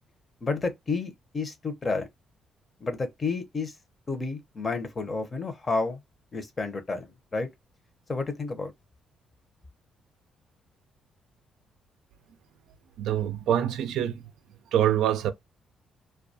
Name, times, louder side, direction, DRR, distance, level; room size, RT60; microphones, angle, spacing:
voice 1, 0.4-2.1 2.8-3.7 4.1-6.0 6.3-7.5 8.1-8.7, left 3 dB, 35° left, 0.7 m, -30 dB
voice 2, 13.0-14.2 14.7-15.3, right 10 dB, 85° right, 0.3 m, -25 dB
2.2 x 2.2 x 2.6 m
cardioid pair, 90°, 0 cm